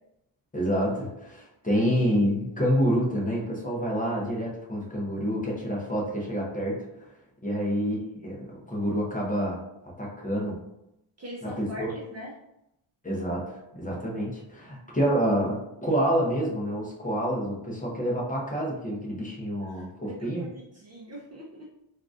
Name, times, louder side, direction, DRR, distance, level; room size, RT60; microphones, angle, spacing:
voice 1, 0.5-7.1 7.4-9.6 10.0-10.6 11.4-11.9 13.0-20.5, equal, 15° left, -4 dB, 0.6 m, -28 dB
voice 2, 11.2-12.3 14.7-14.8 19.6-21.7, equal, 35° right, -3 dB, 0.5 m, -42 dB
3.6 x 2.5 x 2.4 m, 0.85 s
wide cardioid pair, 145°, 48 cm